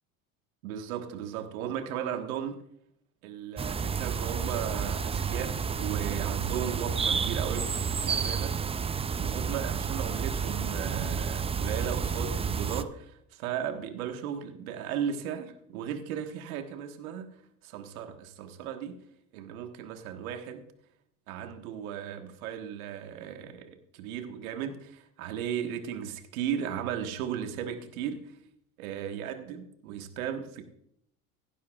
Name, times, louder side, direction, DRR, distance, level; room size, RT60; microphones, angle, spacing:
voice 1, 0.6-2.6 3.2-8.7 9.2-17.3 17.6-19.0 19.3-20.6 21.3-28.2 28.8-30.6, right 9 dB, 85° right, 6 dB, 1.5 m, -36 dB
sound 1, 3.6-12.8, right 6 dB, 15° right, 0.4 m, -30 dB
16.5 x 11.5 x 2.4 m, 0.70 s
hypercardioid pair, 85°, 41 cm